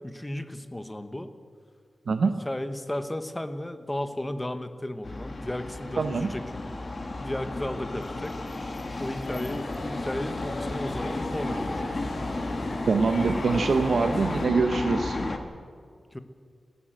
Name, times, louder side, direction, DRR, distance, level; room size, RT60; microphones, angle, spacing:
voice 1, 0.0-1.3 2.2-6.8 7.2-8.3 9.0-12.1 16.1-16.2, left 1 dB, 10° left, 9 dB, 1.1 m, -34 dB
voice 2, 2.1-2.4 6.0-6.3 12.9-15.2, right 4 dB, 70° right, 7 dB, 0.9 m, -24 dB
sound 1, 5.0-15.4, left 2 dB, 35° left, 1.7 m, -33 dB
sound 2, 9.2-14.5, left 2 dB, 55° left, 3.4 m, -38 dB
29.5 x 11.5 x 7.6 m, 2.1 s
wide cardioid pair, 155°, 0 cm